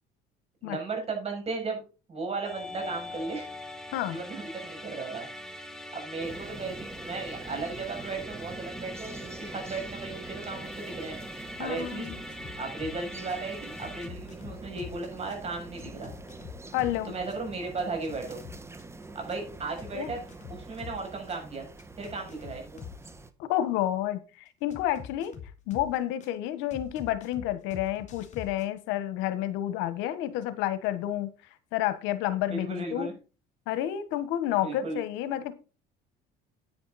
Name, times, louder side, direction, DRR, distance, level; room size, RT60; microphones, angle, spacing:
voice 1, 0.6-1.8 2.1-3.5 4.1-5.3 5.9-11.2 11.6-12.1 12.6-16.1 17.0-18.4 19.2-20.2 20.5-21.7 22.0-22.8 32.5-33.1 34.6-35.0, right 3 dB, 35° right, 2 dB, 7.0 m, -35 dB
Musical instrument, 2.4-14.1, left 1 dB, 5° left, 1.9 m, -42 dB
sound 1, 6.2-23.3, right 3 dB, 15° right, 1.2 m, -45 dB
voice 2, 11.6-12.1 16.7-17.1 19.9-20.1 23.4-24.2 24.6-25.3 25.7-31.3 31.7-33.1 33.7-35.5, left 12 dB, 85° left, 13 dB, 1.3 m, -30 dB
sound 2, 11.8-13.0 13.3-17.0 17.3-21.0 21.3-23.1 24.7-26.3 26.7-28.7, left 7 dB, 40° left, 3.1 m, -45 dB
10.5 x 9.3 x 4.1 m, 0.33 s
cardioid pair, 115°, 19 cm